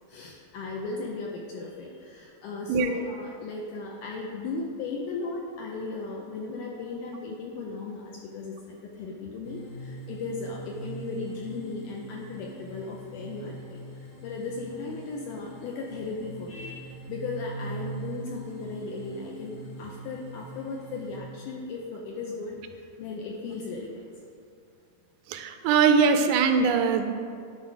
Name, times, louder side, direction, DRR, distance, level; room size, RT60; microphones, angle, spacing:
voice 1, 0.1-24.0, left 3 dB, 80° left, -1 dB, 1.9 m, -36 dB
sound 1, 9.4-21.2, right 3 dB, 60° left, 2.5 m, -42 dB
voice 2, 25.3-27.1, right 5 dB, 90° right, 7 dB, 2.5 m, -21 dB
11.0 x 4.2 x 4.7 m, 2.4 s
omnidirectional pair, 4.3 m